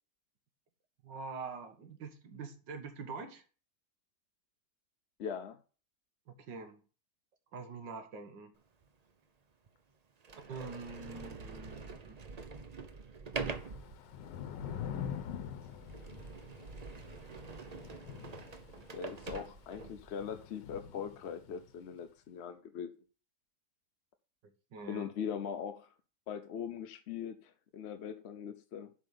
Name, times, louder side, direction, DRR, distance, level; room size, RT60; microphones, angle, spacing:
voice 1, 1.0-3.4 6.3-6.8 7.5-8.5 10.4-12.2 24.4-25.1, right 4 dB, 80° right, 2.0 m, -45 dB
voice 2, 5.2-5.6 18.9-22.9 24.9-25.9 26.3-28.9, left 7 dB, 60° left, 0.7 m, -41 dB
Sliding door, 8.8-8.9 9.7-9.8 10.2-20.1, right 4 dB, 65° right, 0.4 m, -45 dB
Thunder / Rain, 13.3-21.7, left 8 dB, 85° left, 1.5 m, -45 dB
7.6 x 5.2 x 6.6 m
omnidirectional pair, 1.9 m